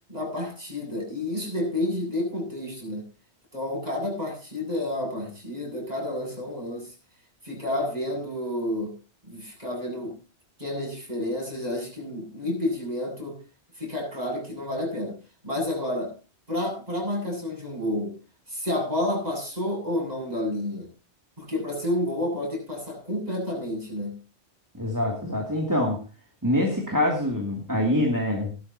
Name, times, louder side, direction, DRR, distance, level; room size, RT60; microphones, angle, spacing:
voice 1, 0.1-3.1 3.5-6.9 7.4-8.9 9.3-10.2 10.6-13.4 13.8-15.2 15.4-16.1 16.5-18.2 18.5-20.9 21.4-24.2, left 1 dB, 40° right, 0 dB, 7.4 m, -30 dB
voice 2, 24.7-26.0 26.4-28.5, left 1 dB, 15° right, 0 dB, 2.5 m, -25 dB
18.5 x 12.5 x 2.8 m, 0.31 s
omnidirectional pair, 1.1 m